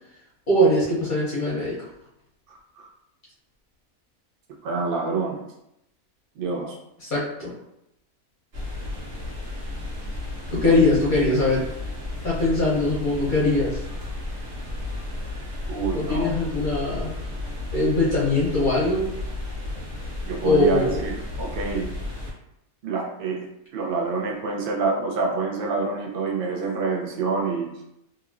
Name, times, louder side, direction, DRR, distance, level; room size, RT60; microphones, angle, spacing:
voice 1, 0.5-1.8 7.1-7.5 10.5-11.6 12.2-13.8 15.9-17.1 17.7-19.0 20.4-21.0, left 2 dB, 50° left, -6 dB, 0.6 m, -21 dB
voice 2, 2.5-2.9 4.6-5.4 6.4-6.8 15.7-16.4 16.7-16.9 20.3-21.9 22.8-27.8, right 4 dB, 70° right, -1 dB, 0.5 m, -27 dB
sound 1, 8.5-22.3, left 2 dB, 55° right, 1.1 m, -33 dB
2.9 x 2.4 x 2.4 m, 0.83 s
omnidirectional pair, 1.6 m